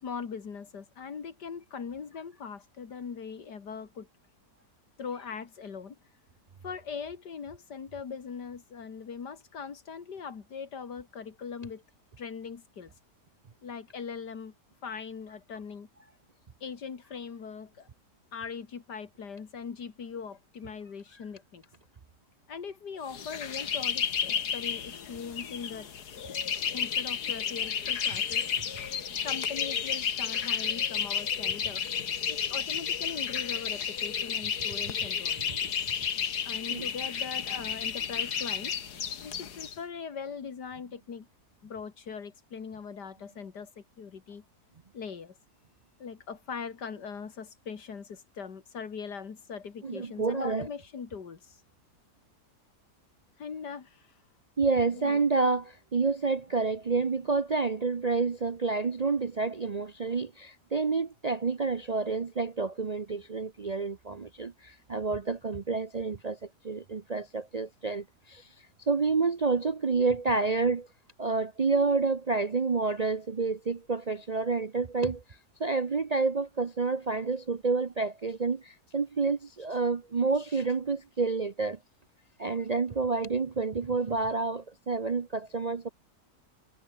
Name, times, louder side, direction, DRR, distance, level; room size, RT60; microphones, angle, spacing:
voice 1, 0.0-4.1 5.0-6.0 6.6-11.8 12.2-12.9 13.6-14.5 14.8-15.9 16.6-17.9 18.3-21.6 22.5-25.9 26.7-28.4 29.2-31.8 32.3-35.6 36.4-38.8 39.2-41.3 41.6-44.4 44.9-45.4 46.0-51.6 53.4-54.1 54.9-55.2, left 6 dB, 90° left, 2.7 m, -41 dB
sound 1, 23.1-39.7, left 7 dB, 75° left, 2.0 m, -32 dB
voice 2, 49.8-50.7 54.6-66.4 66.6-68.5 68.8-70.9 71.2-75.2 75.6-81.8 82.4-85.9, right 4 dB, 45° right, 0.5 m, -29 dB
omnidirectional pair, 1.7 m